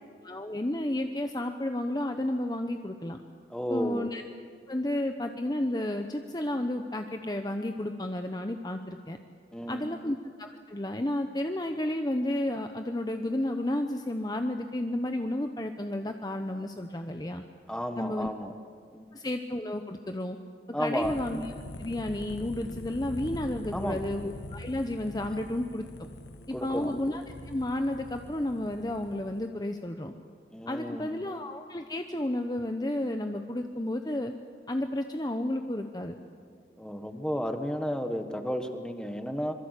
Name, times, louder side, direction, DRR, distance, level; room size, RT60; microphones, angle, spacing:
voice 1, 0.2-3.2 3.7-4.2 4.7-9.2 9.7-17.4 18.0-18.3 19.1-20.4 20.8-21.5 21.8-25.8 26.5-30.1 30.7-34.3 34.7-36.2, left 1 dB, 20° left, 6 dB, 0.9 m, -32 dB
voice 2, 3.5-4.1 9.5-10.0 17.7-18.5 18.9-19.1 20.7-21.1 23.7-24.1 26.5-26.9 30.5-31.1 36.8-39.6, equal, 5° left, 6 dB, 1.5 m, -33 dB
sound 1, 21.0-29.5, left 1 dB, 85° left, 1.5 m, -43 dB
26.0 x 23.0 x 8.3 m, 2.1 s
head